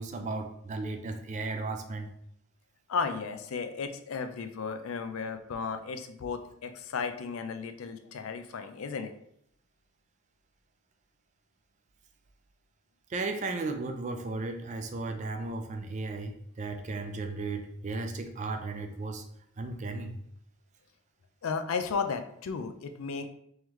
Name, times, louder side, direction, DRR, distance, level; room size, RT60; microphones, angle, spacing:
voice 1, 0.0-2.1 13.1-19.2 19.6-20.2, right 3 dB, 35° right, 6 dB, 0.4 m, -35 dB
voice 2, 2.9-9.1 21.4-23.3, left 5 dB, 75° left, 8 dB, 0.4 m, -34 dB
3.7 x 3.1 x 3.0 m, 0.70 s
head